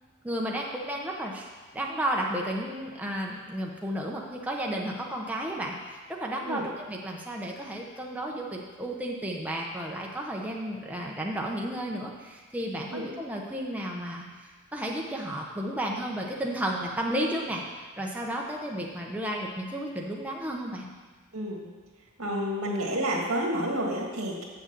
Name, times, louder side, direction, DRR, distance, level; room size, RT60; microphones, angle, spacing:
voice 1, 0.2-14.2 14.7-17.6 18.0-20.8, right 1 dB, 5° right, -2 dB, 0.9 m, -33 dB
voice 2, 21.3-21.6 22.2-24.5, equal, 85° right, 0 dB, 1.9 m, -29 dB
8.0 x 6.5 x 6.7 m, 1.4 s
head